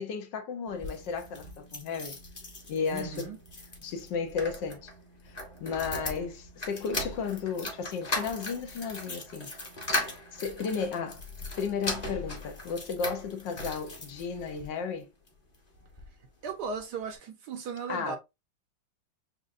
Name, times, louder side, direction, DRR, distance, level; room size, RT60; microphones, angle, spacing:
voice 1, 0.0-2.2 2.7-3.3 3.8-4.9 5.3-9.5 10.3-11.2 11.6-15.1 17.9-18.2, left 5 dB, 70° left, 1.4 m, -34 dB
sound 1, 0.7-14.7 15.3-16.1 16.4-16.5 16.7-16.8, left 2 dB, 25° left, 0.9 m, -38 dB
voice 2, 2.9-3.4 16.4-18.2, right 5 dB, 65° right, 1.2 m, -36 dB
6.4 x 2.4 x 2.5 m
omnidirectional pair, 2.1 m